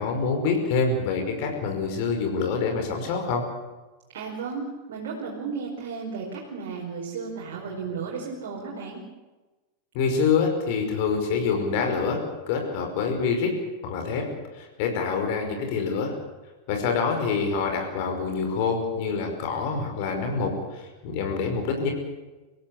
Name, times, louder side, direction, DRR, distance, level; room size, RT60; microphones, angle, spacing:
voice 1, 0.0-3.4 9.9-12.2 12.5-13.5 13.8-14.3 14.5-16.1 16.7-21.9, left 5 dB, 50° left, 3 dB, 5.6 m, -26 dB
voice 2, 4.1-9.0, right 5 dB, 55° right, -2 dB, 4.9 m, -34 dB
26.0 x 16.5 x 8.5 m, 1.2 s
figure-of-eight pair, 90°, 0 cm